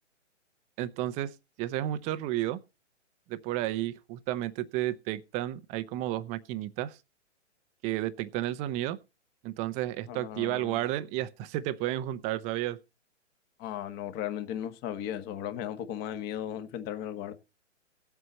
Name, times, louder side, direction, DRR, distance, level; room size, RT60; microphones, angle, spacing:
voice 1, 0.8-2.6 3.3-7.0 7.8-9.0 9.4-12.8, right 14 dB, 20° right, 0.7 m, -32 dB
voice 2, 10.1-10.9 13.6-17.3, left 10 dB, 25° left, 1.3 m, -36 dB
18.0 x 7.9 x 4.2 m
hypercardioid pair, 135°, 37 cm